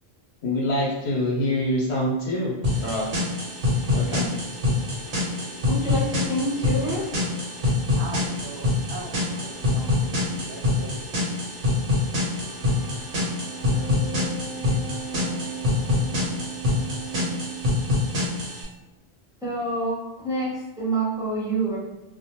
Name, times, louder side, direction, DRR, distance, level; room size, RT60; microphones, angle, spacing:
voice 1, 0.4-2.5 2.8-3.1 3.9-4.3, left 1 dB, 75° left, -3 dB, 1.0 m, -25 dB
sound 1, 2.3-18.5, right 3 dB, 55° left, 0.6 m, -41 dB
sound 2, 2.6-18.6, left 2 dB, 85° right, 1.2 m, -25 dB
voice 2, 5.7-7.2 19.4-21.8, right 1 dB, 5° right, -8 dB, 0.7 m, -27 dB
voice 3, 7.9-11.3, right 3 dB, 65° right, -2 dB, 0.8 m, -40 dB
2.5 x 2.2 x 2.8 m, 1.0 s
omnidirectional pair, 1.1 m